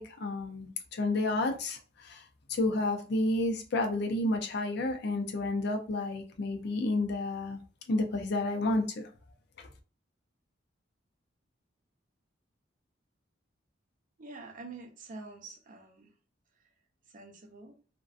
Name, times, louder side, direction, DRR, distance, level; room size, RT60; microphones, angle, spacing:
voice 1, 0.0-2.2 2.5-7.6 7.9-9.1, left 2 dB, 60° left, 0.5 m, -30 dB
voice 2, 14.2-16.1 17.1-17.8, right 3 dB, 45° right, 0.5 m, -46 dB
2.5 x 2.2 x 2.3 m
head